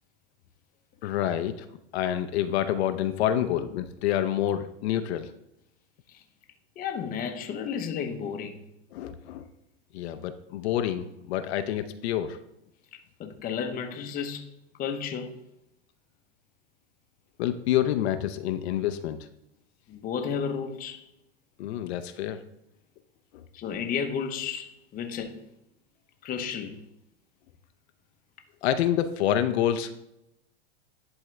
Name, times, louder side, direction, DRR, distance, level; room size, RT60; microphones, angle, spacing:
voice 1, 1.0-1.7 1.9-5.3 8.9-9.5 9.9-12.4 17.4-19.2 21.6-22.4 23.3-23.4 28.6-29.9, left 11 dB, 70° left, 0.7 m, -27 dB
voice 2, 6.8-8.6 13.2-14.5 14.8-15.4 19.9-21.0 23.5-25.4 26.2-26.8, left 7 dB, 25° left, 0.8 m, -32 dB
10.5 x 3.6 x 3.3 m
supercardioid pair, 125°, 34 cm